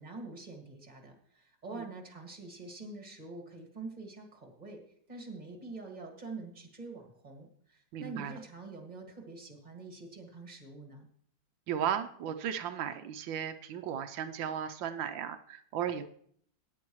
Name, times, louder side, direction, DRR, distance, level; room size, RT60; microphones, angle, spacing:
voice 1, 0.0-4.8 5.1-11.1, right 3 dB, 20° right, 2 dB, 2.1 m, -45 dB
voice 2, 7.9-8.4 11.7-16.1, right 9 dB, 85° right, 8 dB, 1.4 m, -35 dB
16.0 x 10.0 x 3.1 m, 0.63 s
omnidirectional pair, 2.0 m